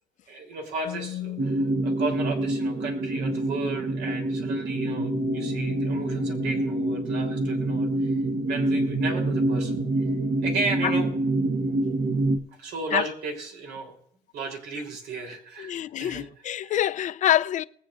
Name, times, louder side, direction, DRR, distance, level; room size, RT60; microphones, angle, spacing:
voice 1, 0.3-8.1 8.5-9.8 10.4-11.1 12.6-13.9 14.3-16.7, right 3 dB, 85° right, 3.2 m, -34 dB
sound 1, 0.8-1.9 4.7-11.8, left 4 dB, 80° left, 0.9 m, -39 dB
sound 2, 1.4-12.4, right 2 dB, 50° right, 1.0 m, -26 dB
voice 2, 15.6-17.6, left 12 dB, 50° left, 0.4 m, -25 dB
21.0 x 8.8 x 2.5 m
cardioid pair, 110°, 17 cm